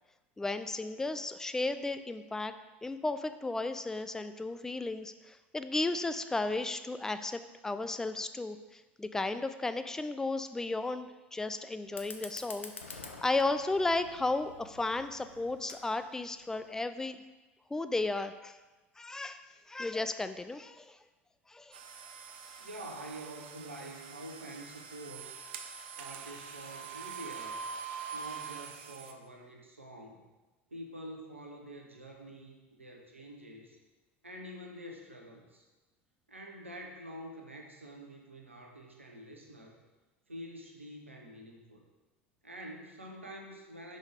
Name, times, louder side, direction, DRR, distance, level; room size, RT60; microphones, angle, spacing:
voice 1, 0.4-2.5 2.8-17.2 17.7-18.6 19.0-19.4 19.7-21.0 21.5-21.8, left 2 dB, 10° left, 10 dB, 0.3 m, -34 dB
Fire, 11.8-16.8, left 4 dB, 80° left, 0.5 m, -49 dB
sound 1, 21.7-29.1, right 6 dB, 60° right, 0.5 m, -44 dB
voice 2, 22.6-25.4 25.9-27.6 28.1-30.2 30.7-33.8 34.2-35.6 36.3-39.8 40.3-41.8 42.4-44.0, right 1 dB, 85° right, 1 dB, 0.8 m, -47 dB
5.3 x 5.2 x 3.5 m, 1.2 s
figure-of-eight pair, 70°, 7 cm